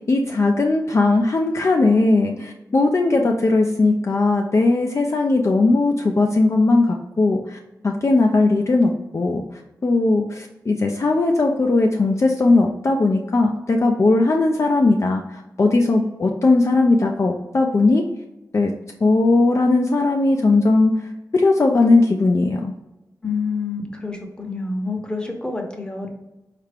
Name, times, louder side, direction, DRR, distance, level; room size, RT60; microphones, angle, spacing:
voice 1, 0.1-7.6 7.8-9.4 9.8-18.0 18.5-18.7 19.0-20.9 21.3-22.7, left 3 dB, 45° left, 1 dB, 0.4 m, -18 dB
voice 2, 23.2-26.1, left 4 dB, 15° left, 1 dB, 0.8 m, -28 dB
4.4 x 2.4 x 3.3 m, 0.96 s
wide cardioid pair, 100°, 7 cm